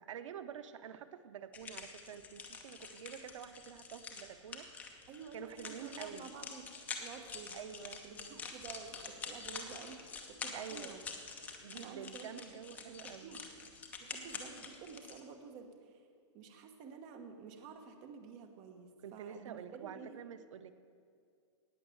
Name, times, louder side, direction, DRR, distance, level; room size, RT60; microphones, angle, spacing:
voice 1, 0.0-4.7 5.3-6.3 7.5-8.0 10.5-11.0 11.6-13.3 19.0-20.7, right 8 dB, 85° right, 11 dB, 0.7 m, -48 dB
sound 1, 1.5-15.2, left 5 dB, 10° left, 0.8 m, -47 dB
voice 2, 5.1-6.7 7.0-7.6 8.0-10.0 10.3-11.1 11.7-13.5 14.0-15.7 16.3-20.2, right 5 dB, 25° right, 6 dB, 1.1 m, -50 dB
18.0 x 6.4 x 7.8 m, 2.3 s
supercardioid pair, 175°, 16 cm